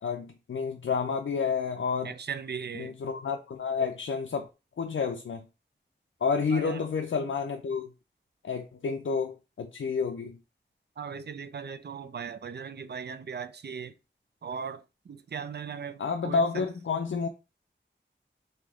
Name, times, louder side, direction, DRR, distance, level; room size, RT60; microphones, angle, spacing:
voice 1, 0.0-2.1 2.7-4.5 4.8-5.5 6.2-7.9 8.4-10.4 16.0-17.3, left 5 dB, 85° left, 0.4 m, -30 dB
voice 2, 2.0-2.9 6.5-6.8 11.0-13.9 14.4-16.6, right 6 dB, 60° right, 0.4 m, -38 dB
3.3 x 2.8 x 3.6 m
wide cardioid pair, 45°, 20 cm